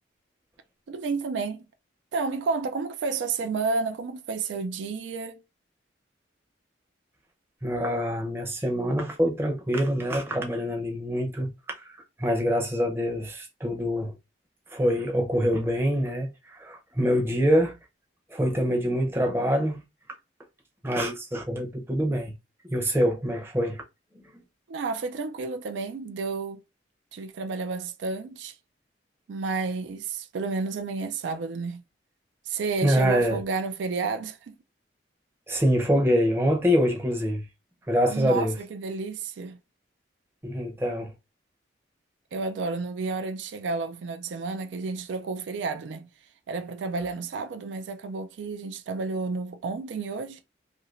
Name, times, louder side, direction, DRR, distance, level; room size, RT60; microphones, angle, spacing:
voice 1, 0.9-1.6 2.1-5.4 24.7-26.6 27.1-28.5 29.3-31.8 32.5-34.5 38.1-39.6 42.3-46.1 46.5-50.4, right 4 dB, 80° right, 0.4 m, -31 dB
voice 2, 7.6-14.1 14.7-17.8 18.3-19.8 20.8-22.3 22.6-23.8 24.1-24.2 32.8-33.4 35.5-37.4 37.9-38.6 40.4-41.1, equal, 15° right, 0.6 m, -25 dB
2.7 x 2.5 x 3.1 m
head